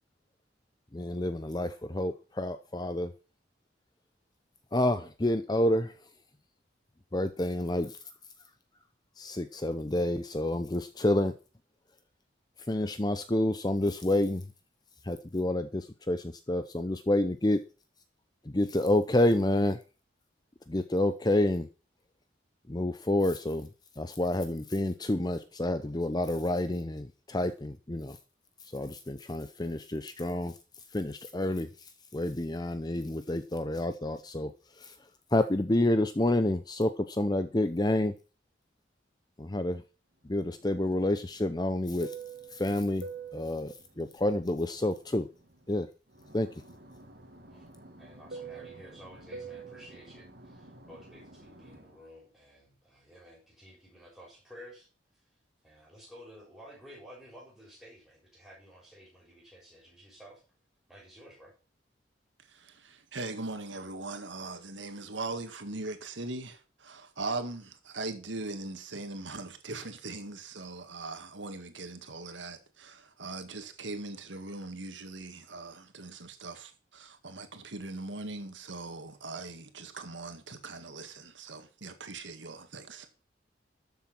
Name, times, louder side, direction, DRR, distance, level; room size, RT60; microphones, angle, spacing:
voice 1, 0.9-3.1 4.7-5.9 7.1-8.0 9.2-11.3 12.7-14.4 15.0-17.6 18.4-19.8 20.7-21.7 22.7-23.7 24.0-28.2 28.6-30.5 30.9-34.9 35.3-38.1 39.4-39.8 40.2-42.1 42.5-43.1 43.3-45.3 45.7-45.9 46.3-46.5, left 1 dB, 20° left, 0.7 m, -29 dB
Fixed-wing aircraft airplane, 40.4-45.8 46.1-52.0, right 4 dB, 60° right, 2.5 m, -47 dB
voice 2, 48.0-54.9 55.6-60.4 60.9-61.5, equal, ahead, 6.9 m, -52 dB
voice 3, 62.5-83.1, right 3 dB, 90° right, 1.9 m, -40 dB
13.0 x 7.3 x 6.0 m
head